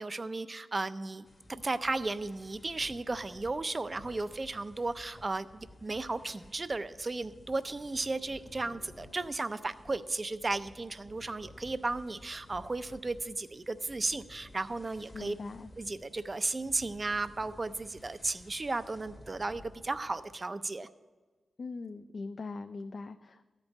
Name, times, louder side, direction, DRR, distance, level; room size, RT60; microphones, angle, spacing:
voice 1, 0.0-15.3 15.8-20.9, right 3 dB, 30° right, 13 dB, 0.4 m, -35 dB
sound 1, 1.3-20.3, left 1 dB, 25° left, 0.9 m, -55 dB
voice 2, 15.1-15.7 21.6-23.5, left 3 dB, 50° left, 8 dB, 0.3 m, -41 dB
13.5 x 5.3 x 8.2 m, 1.3 s
wide cardioid pair, 110°, 0 cm